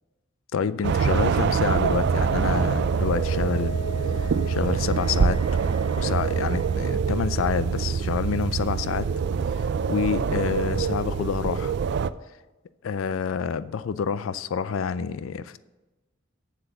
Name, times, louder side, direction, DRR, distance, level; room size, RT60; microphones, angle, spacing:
voice 1, 0.5-3.8 4.2-5.4 6.0-9.1 9.5-11.8 12.8-15.6, left 6 dB, 75° left, 0.4 m, -28 dB
sound 1, 0.8-12.1, right 6 dB, 60° right, 0.3 m, -25 dB
Wind instrument woodwind instrument, 1.6-6.9, left 1 dB, 30° left, 1.3 m, -41 dB
7.6 x 7.0 x 6.8 m
head